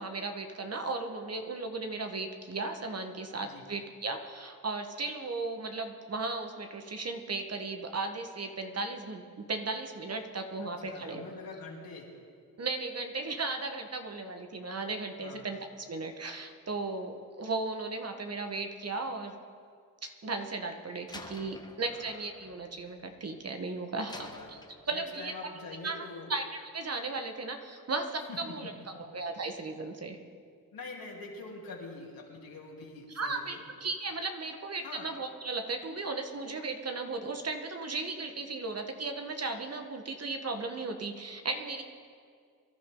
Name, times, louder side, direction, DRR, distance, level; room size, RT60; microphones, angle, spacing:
voice 1, 0.0-9.2 9.5-11.2 12.6-19.4 20.0-24.6 24.9-25.3 25.8-26.0 26.3-30.2 33.1-41.8, right 3 dB, 40° right, 5 dB, 1.5 m, -36 dB
voice 2, 10.8-12.1 15.2-15.5 21.9-22.1 24.1-24.5 24.9-26.3 28.3-28.5 29.0-29.1 30.7-33.6 34.8-35.1, left 3 dB, 70° left, -3 dB, 3.3 m, -45 dB
Slam, 21.1-23.5 24.1-25.3, left 2 dB, 10° left, 1.3 m, -50 dB
24.0 x 11.5 x 3.9 m, 2.1 s
cardioid pair, 70°, 36 cm